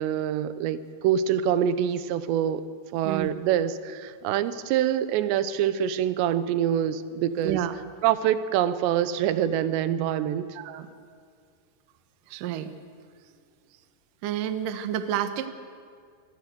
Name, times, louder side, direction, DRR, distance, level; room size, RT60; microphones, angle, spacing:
voice 1, 0.0-2.6 2.9-7.6 8.0-10.5, right 10 dB, 90° right, 14 dB, 3.1 m, -25 dB
voice 2, 7.4-7.8 10.6-10.9 12.3-12.7 14.2-15.5, right 10 dB, 65° right, 10 dB, 2.3 m, -29 dB
26.5 x 19.0 x 7.9 m, 2.2 s
omnidirectional pair, 4.9 m